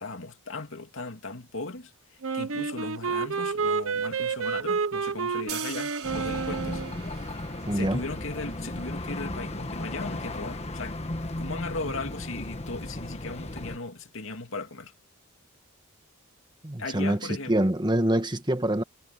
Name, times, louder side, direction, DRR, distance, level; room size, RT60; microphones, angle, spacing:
voice 1, 0.0-7.4 7.7-11.0 11.4-14.9 16.8-17.6, left 3 dB, 65° left, 2.7 m, -37 dB
Wind instrument woodwind instrument, 2.2-7.0, right 5 dB, 70° right, 1.0 m, -29 dB
sound 1, 5.5-11.6, right 9 dB, 90° right, 4.5 m, -44 dB
sound 2, 6.0-13.8, left 1 dB, 30° left, 1.7 m, -35 dB
voice 2, 7.7-8.0 16.6-17.2 17.5-18.8, right 1 dB, 20° right, 1.6 m, -25 dB
head